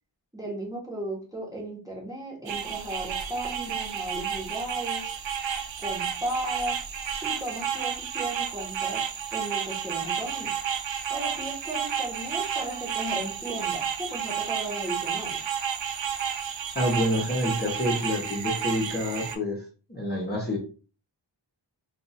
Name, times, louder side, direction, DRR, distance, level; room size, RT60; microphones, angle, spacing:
voice 1, 0.3-5.1 5.8-6.8 7.2-9.0 9.3-10.5 11.1-15.4, right 1 dB, 10° right, -3 dB, 1.2 m, -35 dB
sound 1, 2.5-19.4, right 8 dB, 80° right, 0.6 m, -31 dB
voice 2, 16.7-19.6 19.9-20.6, left 1 dB, 20° left, -3 dB, 1.0 m, -27 dB
2.6 x 2.5 x 4.1 m, 0.36 s
wide cardioid pair, 100°, 45 cm